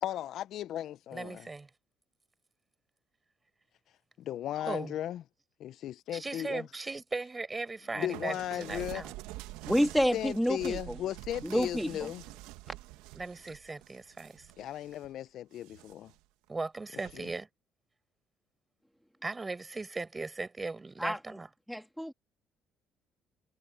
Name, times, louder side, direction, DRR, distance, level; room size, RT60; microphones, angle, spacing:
voice 1, 0.0-1.5 4.2-5.2 5.6-6.7 7.9-9.0 10.1-12.2 14.6-16.1, left 12 dB, 65° left, 0.8 m, -36 dB
voice 2, 1.1-1.7 4.7-4.9 6.1-9.1 13.1-14.5 16.5-17.5 19.2-21.5, right 3 dB, 25° right, 6.1 m, -38 dB
sound 1, 8.1-15.1 15.5-16.2 17.0-17.4, right 19 dB, 80° right, 1.7 m, -46 dB
voice 3, 9.6-10.9 11.4-12.1 21.0-21.2 21.7-22.1, equal, ahead, 2.3 m, -29 dB
hypercardioid pair, 60°, 0 cm